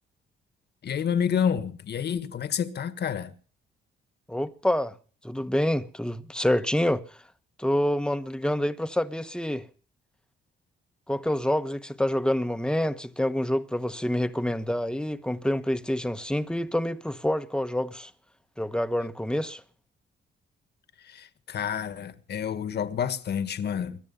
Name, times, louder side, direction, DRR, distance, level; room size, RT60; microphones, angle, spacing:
voice 1, 0.8-3.3 21.0-24.0, left 8 dB, 55° left, 1.7 m, -29 dB
voice 2, 4.3-5.0 5.2-7.2 7.6-9.7 11.1-18.1 18.6-19.6, left 1 dB, 5° left, 1.2 m, -27 dB
23.0 x 10.5 x 5.6 m
cardioid pair, 90°, 20 cm